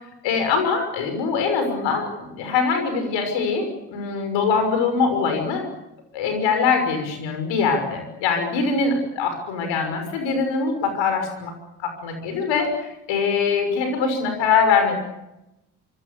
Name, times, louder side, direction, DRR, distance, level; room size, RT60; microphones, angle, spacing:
voice 1, 0.2-5.7 6.1-11.5 11.8-14.9, left 5 dB, 75° left, 6 dB, 6.3 m, -23 dB
26.0 x 26.0 x 6.9 m, 0.92 s
hypercardioid pair, 45°, 45 cm